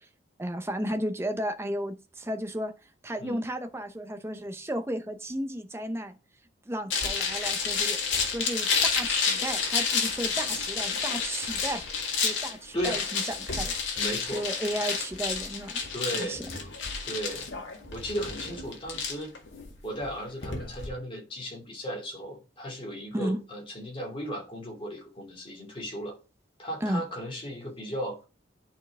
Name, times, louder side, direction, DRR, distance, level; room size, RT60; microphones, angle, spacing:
voice 1, 0.4-2.7 3.0-6.2 6.7-8.0 8.2-11.8 12.2-13.7 14.3-15.7 16.2-16.6 23.1-23.4 26.8-27.0, equal, 15° right, 0.7 m, -33 dB
sound 1, 6.9-20.9, left 5 dB, 70° left, 1.9 m, -30 dB
voice 2, 14.0-14.4 15.9-16.4 17.0-17.5 17.9-19.3 19.8-26.2 26.6-28.2, equal, 25° left, 2.7 m, -35 dB
10.5 x 4.5 x 3.5 m
head